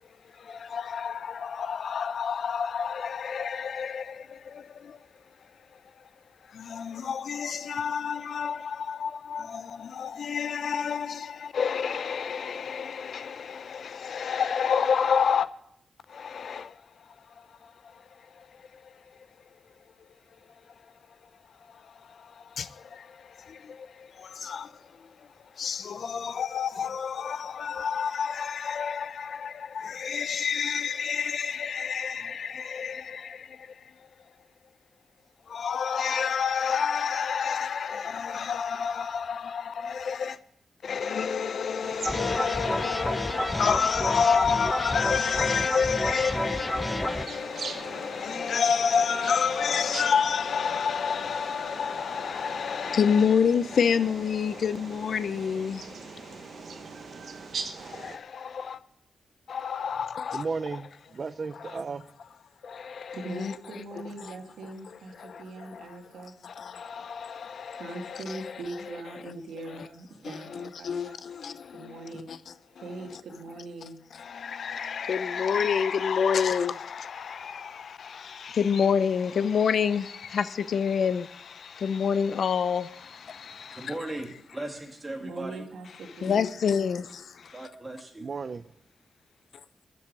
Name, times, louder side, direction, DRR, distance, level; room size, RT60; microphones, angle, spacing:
voice 1, 0.4-5.0 6.5-15.5 16.1-16.7 17.9-18.0 18.4-18.5 22.1-24.7 25.6-33.7 35.5-40.4 40.8-56.6 57.8-58.8 59.5-60.5 62.6-63.5 65.2-65.8 66.4-68.2 70.2-72.4 74.2-83.9 86.2-87.6, left 6 dB, 65° left, 0.6 m, -29 dB
sound 1, 41.8-58.2, right 5 dB, 65° right, 1.2 m, -42 dB
sound 2, 42.0-47.3, left 1 dB, 5° left, 0.5 m, -30 dB
voice 2, 60.3-62.1 88.2-88.6, right 4 dB, 45° right, 0.5 m, -34 dB
voice 3, 63.1-66.4 67.8-71.2 71.7-72.4 72.8-74.0 85.2-86.5, right 2 dB, 90° right, 2.0 m, -41 dB
voice 4, 83.3-85.6 87.5-88.3, right 1 dB, 20° right, 2.5 m, -38 dB
12.5 x 7.4 x 9.8 m
cardioid pair, 105°, 0 cm